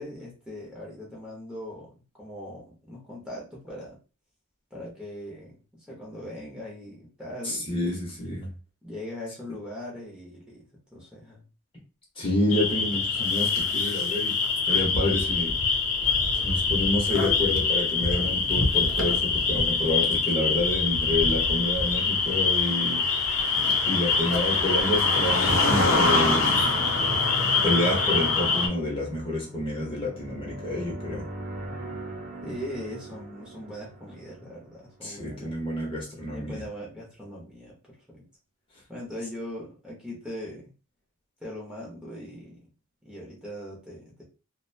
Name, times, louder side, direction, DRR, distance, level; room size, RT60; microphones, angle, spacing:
voice 1, 0.0-1.9 2.2-4.0 4.7-5.6 5.9-7.8 8.8-10.6 10.9-11.4 32.4-35.6 36.3-38.3 38.9-40.6 41.4-42.6 43.0-44.2, left 1 dB, 5° right, -4 dB, 0.8 m, -40 dB
voice 2, 7.4-8.5 12.2-14.4 14.7-15.5 16.4-23.0 23.8-26.5 27.6-31.2 35.0-36.6, left 1 dB, 25° left, -2 dB, 0.8 m, -28 dB
sound 1, 12.5-28.7, left 4 dB, 70° left, 0.7 m, -24 dB
sound 2, 27.6-35.4, right 1 dB, 40° right, 0.6 m, -43 dB
2.6 x 2.1 x 2.6 m, 0.34 s
head